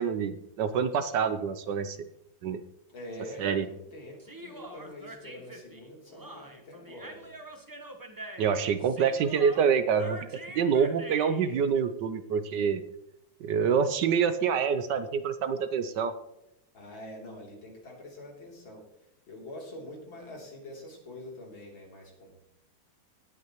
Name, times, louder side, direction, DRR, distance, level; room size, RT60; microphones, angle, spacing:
voice 1, 0.0-2.0 2.4-2.6 3.4-3.7 8.4-10.2 10.5-12.8 13.4-16.1, right 6 dB, 70° right, 11 dB, 1.3 m, -26 dB
voice 2, 2.9-7.3 16.7-18.8 19.3-22.4, left 1 dB, 75° left, -2 dB, 4.0 m, -45 dB
Human voice, 4.2-11.6, right 1 dB, 15° right, 0.7 m, -44 dB
18.0 x 8.6 x 3.0 m, 0.81 s
omnidirectional pair, 2.2 m